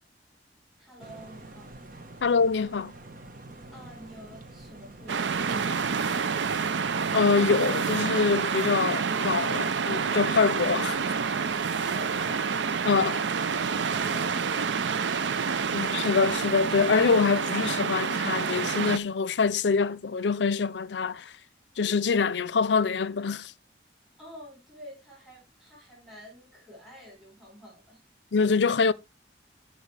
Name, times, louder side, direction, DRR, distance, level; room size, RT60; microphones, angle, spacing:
voice 1, 0.8-1.8 3.7-6.5 11.8-12.5 13.6-15.8 24.2-28.0, equal, ahead, 4.8 m, -48 dB
sound 1, 1.0-17.2, right 2 dB, 50° right, 1.3 m, -49 dB
voice 2, 2.2-2.9 7.1-11.0 12.8-13.2 15.7-21.3 21.8-23.5 28.3-28.9, left 5 dB, 75° left, 0.5 m, -25 dB
sound 2, 5.1-19.0, right 5 dB, 85° right, 0.6 m, -28 dB
12.5 x 6.0 x 3.3 m
head